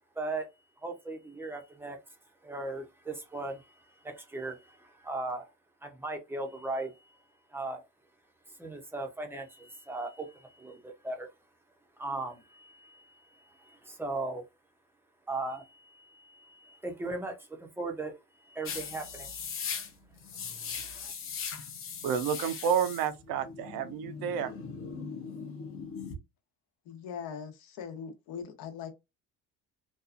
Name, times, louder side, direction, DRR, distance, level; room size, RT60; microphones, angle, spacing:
voice 1, 0.2-0.5 0.8-2.0 2.4-5.5 5.8-7.2 7.5-7.8 8.6-11.3 12.0-14.4 15.3-19.8 20.5-21.1, right 2 dB, 5° right, 0.5 m, -38 dB
sound 1, 18.7-26.2, left 6 dB, 35° left, 0.6 m, -39 dB
voice 2, 22.0-24.5, right 8 dB, 70° right, 0.6 m, -30 dB
voice 3, 26.9-28.9, left 7 dB, 70° left, 0.9 m, -41 dB
2.7 x 2.3 x 2.4 m
cardioid pair, 125°, 37 cm